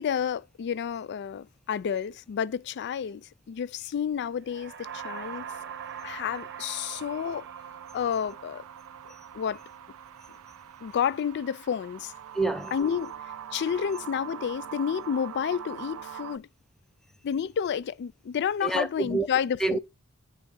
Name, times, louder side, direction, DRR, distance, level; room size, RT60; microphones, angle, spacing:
voice 1, 0.0-5.5 6.0-7.4 7.9-8.6 9.3-9.6 10.8-12.1 12.7-13.1 13.5-16.5 17.2-19.8, left 8 dB, 50° left, 0.3 m, -30 dB
sound 1, 4.4-8.2, right 7 dB, 50° right, 0.8 m, -46 dB
sound 2, 4.8-16.4, right 9 dB, 65° right, 0.4 m, -42 dB
voice 2, 12.3-12.8 18.6-19.3 19.6-19.8, right 3 dB, ahead, 0.5 m, -27 dB
8.8 x 3.5 x 5.3 m
head